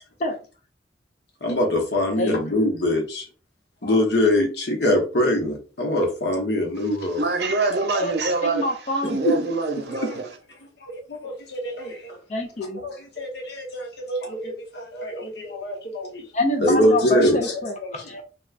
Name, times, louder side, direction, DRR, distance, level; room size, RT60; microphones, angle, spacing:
voice 1, 1.4-3.3 3.8-7.2 9.0-9.4 9.9-10.2 10.9-12.2 12.7-16.2 16.6-18.0, left 1 dB, 65° left, 0.9 m, -24 dB
voice 2, 7.2-8.6 9.1-10.3, right 3 dB, 65° right, 0.6 m, -24 dB
voice 3, 8.4-9.2 12.3-12.8 16.3-18.2, left 1 dB, 40° left, 0.5 m, -26 dB
3.3 x 2.3 x 2.4 m
head